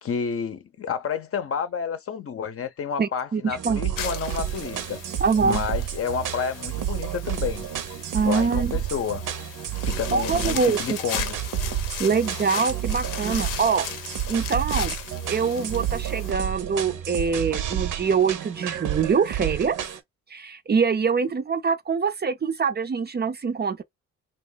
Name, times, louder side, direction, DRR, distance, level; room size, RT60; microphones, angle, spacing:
voice 1, 0.0-5.0 5.4-7.7 8.3-9.2 9.8-11.4, left 7 dB, 45° left, 0.7 m, -30 dB
voice 2, 3.0-3.8 5.2-5.6 8.1-8.7 10.1-11.0 12.0-13.9 14.3-15.0 15.3-19.8 20.3-23.8, right 5 dB, 30° right, 0.5 m, -24 dB
sound 1, 3.5-20.0, right 10 dB, 70° right, 0.8 m, -30 dB
sound 2, 4.0-16.3, left 9 dB, 80° left, 0.7 m, -37 dB
2.7 x 2.4 x 3.8 m
supercardioid pair, 70°, 33 cm